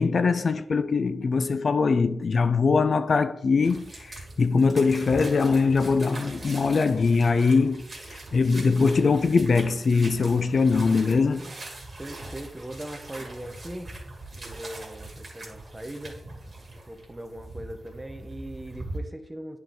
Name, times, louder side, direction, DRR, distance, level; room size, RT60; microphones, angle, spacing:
voice 1, 0.0-11.5, left 4 dB, 50° left, 0.3 m, -22 dB
sound 1, 3.6-19.0, right 2 dB, 30° right, 2.0 m, -42 dB
voice 2, 12.0-13.9 14.4-16.2 16.9-19.6, right 1 dB, 10° right, 0.6 m, -40 dB
10.0 x 3.8 x 3.5 m
wide cardioid pair, 145°, 0 cm